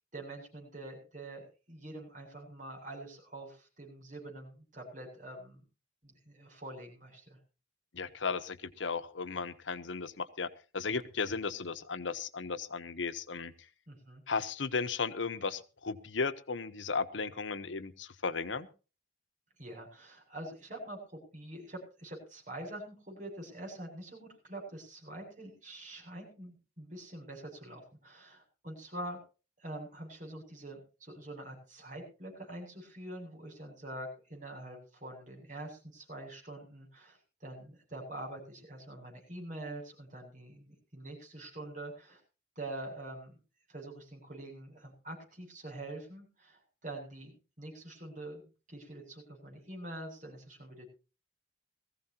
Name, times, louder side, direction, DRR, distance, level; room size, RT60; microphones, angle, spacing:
voice 1, 0.1-1.4 1.7-5.6 6.0-7.4 13.9-14.2 19.6-29.2 29.6-42.2 42.6-43.4 43.7-47.3 47.6-48.4 48.7-50.9, right 1 dB, 40° right, 2 dB, 7.7 m, -45 dB
voice 2, 7.9-10.5 10.7-13.5 14.3-18.7, left 4 dB, 80° left, 12 dB, 1.0 m, -35 dB
20.5 x 15.5 x 2.9 m, 0.34 s
head